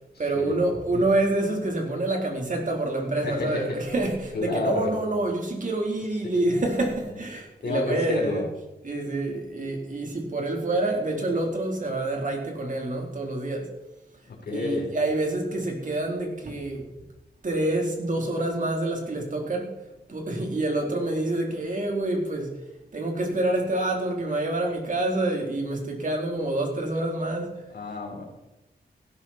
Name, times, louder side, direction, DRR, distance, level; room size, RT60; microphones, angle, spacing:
voice 1, 0.2-8.4 8.8-13.7 14.5-16.8 17.4-19.7 20.1-22.6 22.9-27.6, right 2 dB, 50° right, 1 dB, 4.1 m, -27 dB
voice 2, 3.2-3.8 4.3-4.9 6.2-6.5 7.6-8.4 14.3-14.9 27.7-28.2, left 3 dB, 70° left, 0 dB, 4.7 m, -30 dB
16.0 x 12.0 x 4.5 m, 0.96 s
cardioid pair, 80°, 17 cm